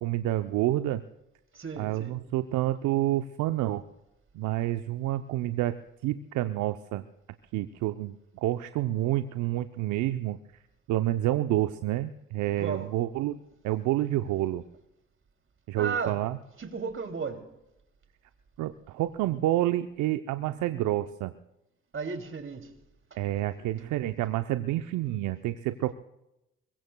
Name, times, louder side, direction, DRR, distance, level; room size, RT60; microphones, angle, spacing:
voice 1, 0.0-1.0 1.8-3.8 4.3-5.7 6.0-7.0 7.5-10.6 10.9-13.4 13.6-14.6 15.7-16.4 18.6-21.3 23.2-25.9, right 14 dB, 70° right, 0.7 m, -28 dB
voice 2, 1.5-2.2 12.6-12.9 15.7-16.2 16.6-17.5 21.9-22.7 23.1-23.2, right 5 dB, 40° right, 2.8 m, -34 dB
25.0 x 22.5 x 2.3 m
hypercardioid pair, 45°, 31 cm